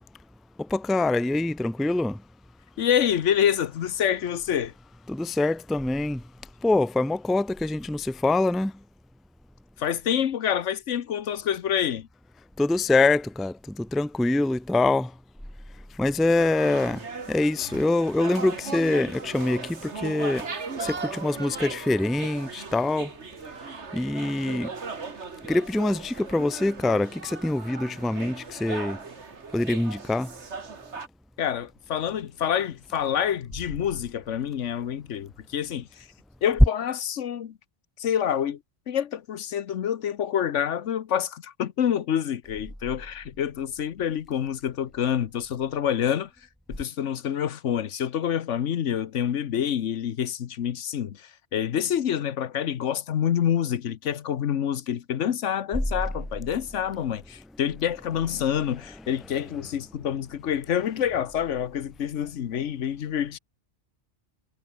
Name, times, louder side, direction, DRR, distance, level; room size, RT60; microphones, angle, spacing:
voice 1, 0.6-2.2 5.1-6.2 6.6-8.7 12.6-15.1 16.0-17.0 17.3-20.5 20.8-23.1 23.9-24.7 25.5-29.0 29.5-30.3, left 2 dB, ahead, 0.4 m, -24 dB
voice 2, 2.8-4.7 9.8-12.1 31.4-36.1 36.4-37.6 38.0-38.6 38.9-46.3 46.7-63.4, left 9 dB, 80° left, 1.2 m, -27 dB
sound 1, 16.3-31.1, right 4 dB, 70° right, 2.4 m, -37 dB
omnidirectional pair, 1.2 m